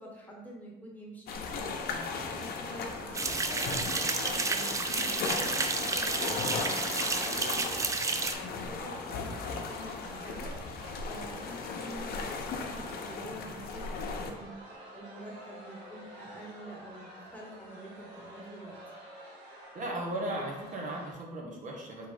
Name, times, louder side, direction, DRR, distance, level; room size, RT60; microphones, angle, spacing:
voice 1, 0.0-1.6 2.3-18.8, equal, 10° left, -3 dB, 1.2 m, -47 dB
sound 1, 1.3-14.3, left 4 dB, 65° left, 0.6 m, -37 dB
sound 2, 2.6-21.1, right 1 dB, 80° right, 1.4 m, -50 dB
sound 3, 3.1-8.3, right 3 dB, 20° right, 0.4 m, -31 dB
voice 2, 19.7-22.1, right 1 dB, 50° right, -1 dB, 0.9 m, -36 dB
3.8 x 2.9 x 4.8 m, 1.1 s
cardioid pair, 110°, 17 cm